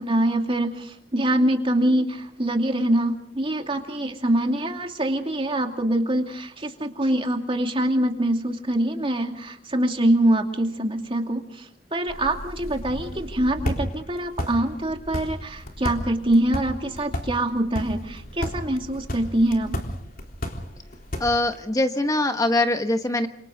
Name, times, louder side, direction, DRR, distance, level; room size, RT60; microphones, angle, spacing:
voice 1, 0.0-11.4 11.9-19.8, right 1 dB, 30° right, 4 dB, 2.5 m, -24 dB
sound 1, 12.1-21.6, equal, 55° left, 3.7 m, -33 dB
voice 2, 21.2-23.3, left 2 dB, 20° left, 6 dB, 1.1 m, -22 dB
29.5 x 27.0 x 3.9 m, 0.66 s
head